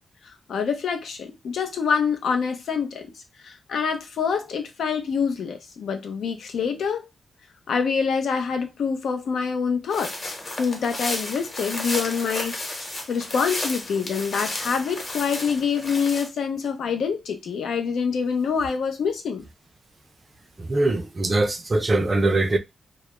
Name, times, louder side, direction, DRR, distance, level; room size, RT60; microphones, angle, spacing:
voice 1, 0.5-3.1 3.4-7.1 7.7-12.6 13.1-19.5, left 6 dB, 85° left, 0.5 m, -26 dB
sound 1, 9.9-16.3, left 2 dB, 40° left, 0.9 m, -32 dB
voice 2, 20.6-22.6, right 2 dB, 35° right, 0.4 m, -22 dB
2.2 x 2.0 x 2.9 m
cardioid pair, 85°, 0 cm